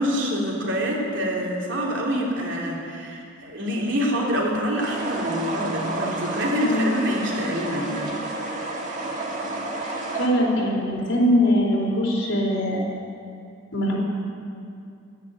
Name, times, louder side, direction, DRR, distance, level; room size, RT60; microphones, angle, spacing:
voice 1, 0.0-8.1, equal, 60° right, -3 dB, 3.2 m, -26 dB
sound 1, 4.8-10.3, right 2 dB, 40° right, 2.2 m, -30 dB
voice 2, 6.6-6.9 9.8-12.8 13.7-14.0, equal, 75° left, -3 dB, 4.1 m, -22 dB
14.0 x 10.5 x 9.8 m, 2.5 s
head